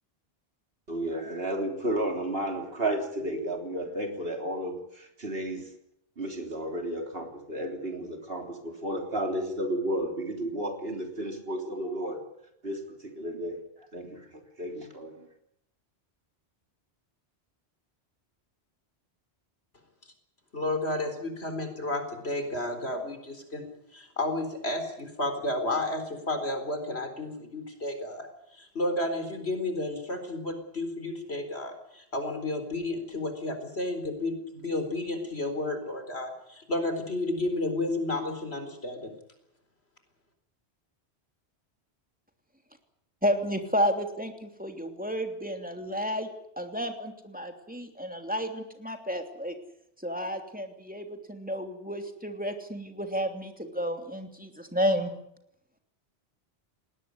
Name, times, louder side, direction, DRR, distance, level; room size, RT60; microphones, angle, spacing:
voice 1, 0.9-5.7 6.2-12.2 12.6-13.6 13.9-15.3, right 1 dB, 60° right, 4 dB, 3.7 m, -32 dB
voice 2, 20.5-28.3 28.5-39.1, left 2 dB, 70° left, 7 dB, 4.5 m, -32 dB
voice 3, 43.2-46.3 46.6-49.5 50.0-55.1, equal, 10° right, 5 dB, 3.0 m, -31 dB
20.0 x 18.5 x 9.7 m, 0.77 s
omnidirectional pair, 1.1 m